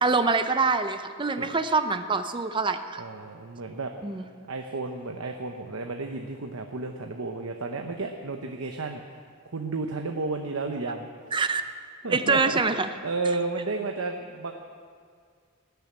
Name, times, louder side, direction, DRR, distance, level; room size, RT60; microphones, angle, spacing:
voice 1, 0.0-3.0 4.0-4.3 11.3-11.6 12.1-12.9, right 4 dB, 25° right, 9 dB, 0.5 m, -25 dB
voice 2, 3.0-3.9 4.5-9.2 9.5-11.1 12.0-12.6 13.0-14.5, right 3 dB, 80° right, 4 dB, 0.9 m, -32 dB
18.0 x 7.0 x 8.9 m, 2.1 s
head